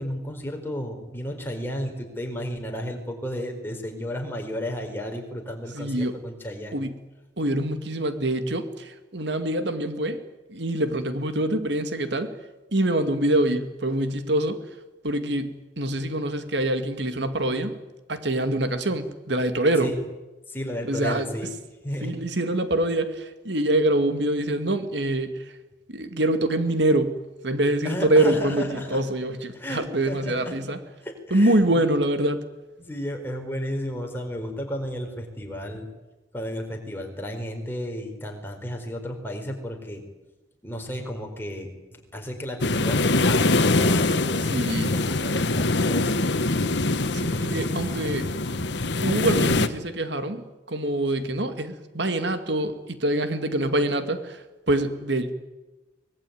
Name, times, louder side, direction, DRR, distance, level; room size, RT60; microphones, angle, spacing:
voice 1, 0.0-6.8 19.8-20.0 20.5-21.5 21.8-22.1 27.8-29.0 29.5-30.6 31.0-31.8 32.8-35.9 36.3-40.0 40.6-41.7 42.1-46.2 47.2-47.7 51.2-51.4, equal, 10° left, 2 dB, 4.5 m, -33 dB
voice 2, 5.7-6.2 6.7-7.0 7.4-10.2 10.5-12.3 12.7-14.6 15.0-17.8 18.1-19.9 20.9-21.3 22.0-25.5 25.9-27.2 27.4-30.8 31.3-32.4 44.5-45.0 47.1-48.3 49.0-55.3, right 1 dB, 60° right, 9 dB, 2.2 m, -25 dB
sound 1, 42.6-49.7, left 2 dB, 60° left, 1.4 m, -23 dB
24.5 x 20.0 x 9.5 m, 1.1 s
head